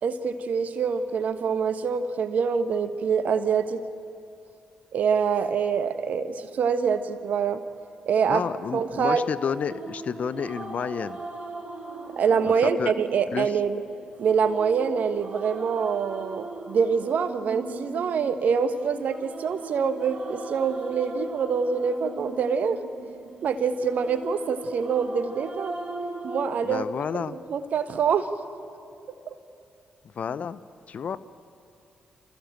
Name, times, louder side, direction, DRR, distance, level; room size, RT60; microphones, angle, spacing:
voice 1, 0.0-3.8 4.9-7.6 8.1-8.4 8.7-9.3 12.2-13.8 14.2-22.8 23.4-25.7 26.2-26.8 27.1-27.2 27.5-28.3 29.3-29.4, right 6 dB, 65° right, 10 dB, 1.3 m, -25 dB
voice 2, 8.3-11.2 12.4-12.9 13.3-13.5 26.6-27.4 30.2-30.6 30.9-31.2, left 7 dB, 55° left, 15 dB, 0.7 m, -30 dB
sound 1, 9.4-26.5, right 2 dB, 45° right, 3.7 m, -40 dB
28.0 x 14.5 x 9.1 m, 2.6 s
hypercardioid pair, 40°, 3 cm